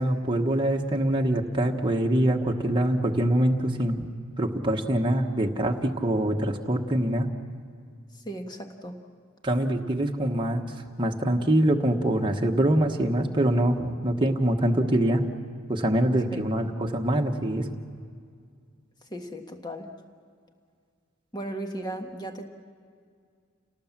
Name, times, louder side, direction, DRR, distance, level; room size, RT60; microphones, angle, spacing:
voice 1, 0.0-4.1 4.4-7.3 9.4-10.6 11.0-15.3 15.7-17.7, right 1 dB, 25° right, 1 dB, 1.3 m, -24 dB
voice 2, 8.1-9.0 16.3-16.4 19.0-19.9 21.3-22.5, right 1 dB, 20° left, 4 dB, 1.6 m, -36 dB
29.0 x 18.5 x 7.4 m, 2.1 s
head